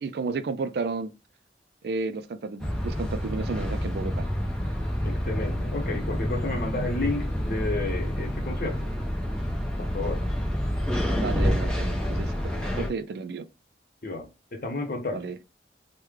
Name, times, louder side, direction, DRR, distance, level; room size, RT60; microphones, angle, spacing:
voice 1, 0.0-1.1 1.8-4.3 11.2-13.5 15.1-15.4, right 4 dB, 60° right, 0.3 m, -32 dB
sound 1, 2.6-12.9, equal, 5° left, 0.6 m, -28 dB
voice 2, 5.0-8.9 9.8-10.2 12.6-12.9 14.0-15.2, left 2 dB, 50° left, 0.8 m, -32 dB
3.1 x 2.2 x 3.5 m
head